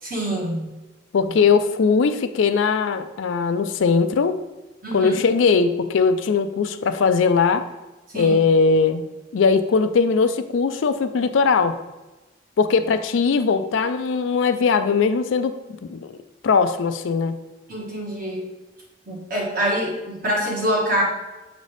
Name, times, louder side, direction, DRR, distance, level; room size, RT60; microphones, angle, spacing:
voice 1, 0.0-0.7 4.8-5.2 8.1-8.3 17.7-18.5 19.1-21.0, equal, 45° right, -3 dB, 1.5 m, -25 dB
voice 2, 1.1-4.4 4.9-7.6 8.1-9.0 9.3-11.8 12.6-15.5 15.9-16.2 16.4-17.3, left 5 dB, 75° left, 10 dB, 0.4 m, -20 dB
7.2 x 4.0 x 3.3 m, 1.1 s
head